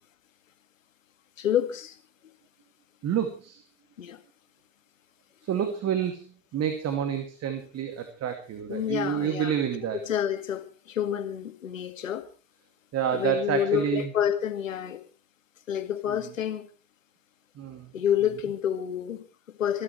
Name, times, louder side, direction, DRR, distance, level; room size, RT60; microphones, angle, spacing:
voice 1, 1.4-2.0 4.0-4.2 8.7-9.5 10.0-12.2 13.1-15.0 15.7-16.7 17.9-19.8, left 9 dB, 80° left, 8 dB, 2.2 m, -28 dB
voice 2, 3.0-3.6 5.5-6.2 6.5-10.0 12.9-14.0 17.6-17.9, right 9 dB, 40° right, 7 dB, 2.4 m, -28 dB
27.5 x 12.0 x 3.2 m, 0.34 s
figure-of-eight pair, 70°, 38 cm